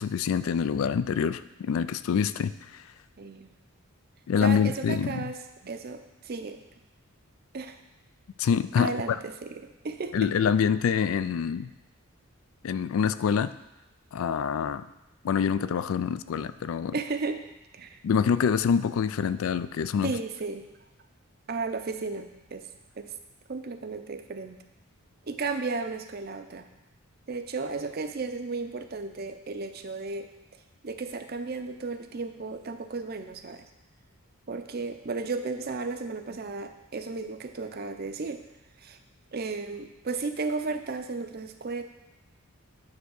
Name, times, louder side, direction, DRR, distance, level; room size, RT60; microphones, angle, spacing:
voice 1, 0.0-2.8 4.3-5.2 8.4-8.9 10.1-11.7 12.6-13.5 14.1-14.8 15.2-17.0 18.0-20.1, left 7 dB, 70° left, 15 dB, 0.3 m, -26 dB
voice 2, 3.2-3.5 4.4-6.6 7.5-7.8 8.8-10.3 16.9-17.4 17.7-18.0 20.0-20.7 21.5-22.7 23.0-23.1 23.5-24.6 25.3-26.7 27.3-30.3 30.8-33.7 34.5-38.4 38.8-39.0 39.3-41.8, right 3 dB, 45° right, 8 dB, 0.5 m, -34 dB
9.5 x 3.4 x 6.3 m, 0.96 s
head